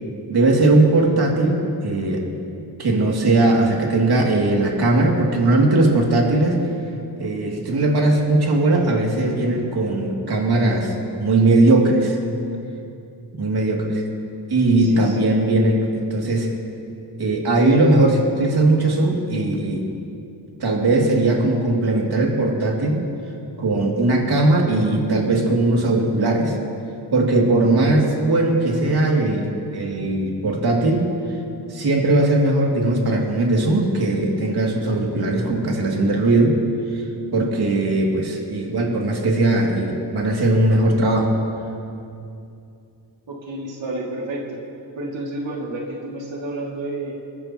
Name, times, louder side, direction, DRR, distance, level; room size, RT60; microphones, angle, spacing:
voice 1, 0.3-2.2 2.8-6.6 7.2-12.2 13.3-14.0 14.5-16.5 17.2-19.9 20.6-23.0 23.6-26.5 27.1-31.0 31.7-36.6 36.9-37.0 37.3-41.4, right 2 dB, 60° right, -1 dB, 2.7 m, -19 dB
voice 2, 14.8-15.4 43.3-44.6 45.0-47.2, right 2 dB, 90° right, -3 dB, 2.5 m, -30 dB
28.5 x 14.0 x 3.0 m, 2.6 s
wide cardioid pair, 100°, 44 cm